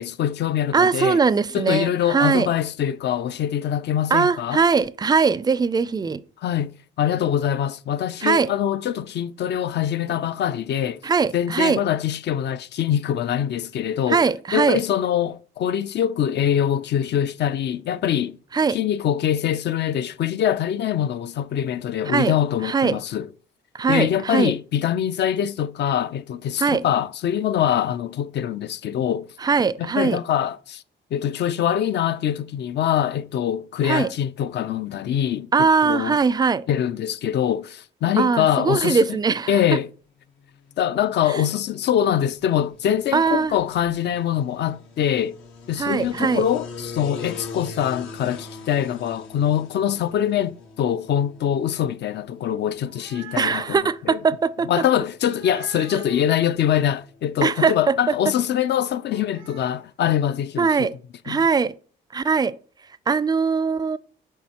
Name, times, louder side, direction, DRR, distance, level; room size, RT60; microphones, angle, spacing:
voice 1, 0.0-1.2 1.5-4.6 6.4-11.0 11.3-14.2 14.5-18.4 18.7-23.3 23.9-29.3 30.0-30.8 31.1-36.2 36.7-39.2 39.5-39.9 40.8-45.4 45.7-54.2 54.7-60.9 61.3-61.4, left 10 dB, 60° left, 0.4 m, -24 dB
voice 2, 0.7-2.5 4.1-6.2 8.2-8.5 11.0-11.8 14.1-14.8 18.5-18.8 22.1-22.3 22.6-23.0 23.7-24.5 26.6-26.8 29.4-30.2 33.8-34.1 35.5-36.7 38.2-39.6 41.3-41.4 43.1-43.6 45.8-46.5 53.4-54.7 57.4-58.1 60.6-60.9 61.2-61.7 62.1-62.5 63.1-64.0, right 5 dB, 20° right, 0.4 m, -21 dB
sound 1, 40.3-58.3, left 4 dB, 85° left, 1.2 m, -43 dB
sound 2, 52.7-53.9 55.3-56.3 59.1-59.8, right 8 dB, 90° right, 0.6 m, -42 dB
7.3 x 4.6 x 2.9 m
cardioid pair, 90°, 20 cm